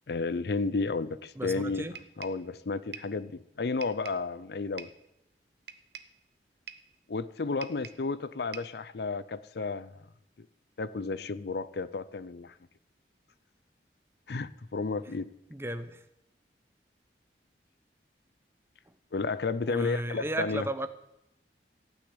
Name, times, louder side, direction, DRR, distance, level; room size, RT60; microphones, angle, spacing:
voice 1, 0.1-1.8 2.2-4.9 7.1-9.9 10.8-12.5 14.3-15.3 19.1-20.7, left 4 dB, 65° left, 15 dB, 0.5 m, -32 dB
voice 2, 1.4-2.0 15.5-16.0 19.6-20.9, right 1 dB, 15° right, 10 dB, 0.7 m, -34 dB
sound 1, 1.9-2.5 2.9-3.2 3.8-4.3 4.8-5.1 5.7-6.2 6.7-6.9 7.6-8.1 8.5-8.8, right 7 dB, 65° right, 0.8 m, -46 dB
15.5 x 6.5 x 9.6 m, 0.87 s
head